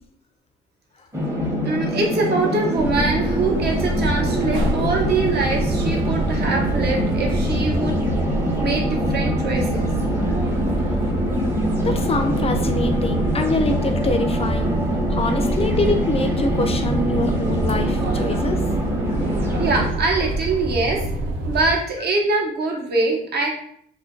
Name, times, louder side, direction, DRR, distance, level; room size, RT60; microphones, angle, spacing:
sound 1, 1.1-19.9, equal, 10° right, 0.8 m, -25 dB
voice 1, 1.6-8.0 8.6-9.9 19.6-21.0 21.5-23.5, right 3 dB, 55° right, -1 dB, 0.8 m, -23 dB
sound 2, 2.7-21.7, right 2 dB, 85° right, 0.5 m, -26 dB
voice 2, 11.8-14.8 15.1-18.6, left 2 dB, 30° left, 6 dB, 0.4 m, -24 dB
2.4 x 2.2 x 3.6 m, 0.65 s
cardioid pair, 90°, 20 cm